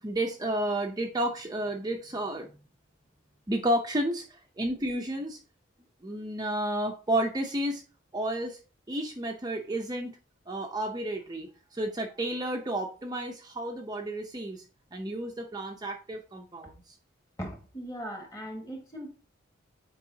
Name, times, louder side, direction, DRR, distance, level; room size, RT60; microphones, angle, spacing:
voice 1, 0.0-2.5 3.5-5.4 6.0-7.8 8.1-8.6 8.9-10.2 10.5-14.6 14.9-17.0, right 1 dB, 20° right, 1 dB, 0.6 m, -31 dB
voice 2, 17.4-19.1, equal, 15° left, 2 dB, 1.5 m, -39 dB
8.3 x 4.7 x 2.7 m, 0.35 s
head